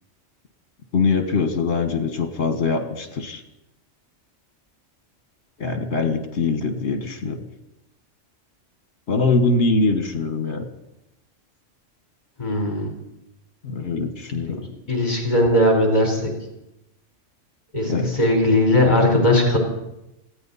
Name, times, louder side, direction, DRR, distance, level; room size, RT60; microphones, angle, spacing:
voice 1, 0.9-3.4 5.6-7.4 9.1-10.7 13.6-14.7 17.9-18.1, left 4 dB, 60° left, 7 dB, 1.8 m, -23 dB
voice 2, 12.4-12.9 14.9-16.3 17.7-19.6, left 1 dB, 35° left, 0 dB, 4.7 m, -18 dB
20.0 x 15.5 x 4.2 m, 0.91 s
omnidirectional pair, 1.3 m